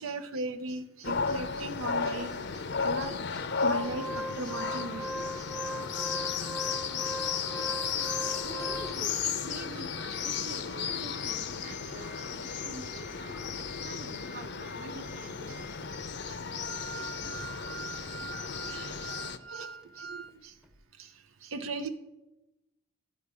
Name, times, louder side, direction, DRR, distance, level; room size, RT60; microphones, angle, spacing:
voice 1, 0.0-3.2 3.6-5.1 5.4-5.5 6.0-8.7 10.1-10.2 11.8-12.6 15.5-15.6 16.3-16.7 16.9-17.1 17.3-17.5 18.3-19.1 19.5-20.5 21.0-21.9, right 2 dB, 85° right, 0.6 m, -40 dB
sound 1, 1.0-19.4, left 6 dB, 55° left, 0.6 m, -34 dB
Organ, 3.7-9.2 9.8-9.9 10.1-10.3 10.7-20.3 20.6-20.8, right 1 dB, 5° right, 0.7 m, -41 dB
voice 2, 8.4-15.7, right 3 dB, 40° right, 1.0 m, -47 dB
11.5 x 5.6 x 8.4 m
head